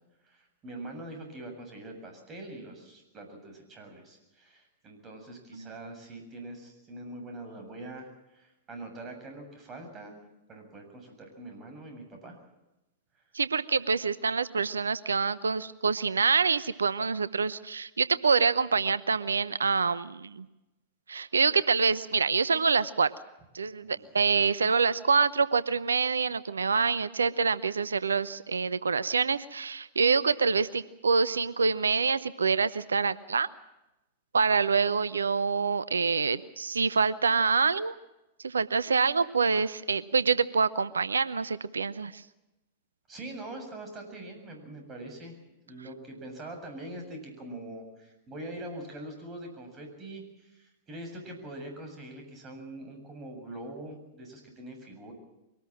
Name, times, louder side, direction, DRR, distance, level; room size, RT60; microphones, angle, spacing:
voice 1, 0.2-8.1 8.3-10.2 10.5-12.4 23.8-24.1 43.1-45.3 45.6-55.1, right 1 dB, 25° right, 4 dB, 7.6 m, -43 dB
voice 2, 13.3-20.5 21.1-23.1 23.5-33.5 34.3-37.9 38.4-42.2, right 5 dB, 80° right, 16 dB, 0.8 m, -26 dB
23.5 x 19.0 x 7.5 m, 0.96 s
figure-of-eight pair, 100°, 0 cm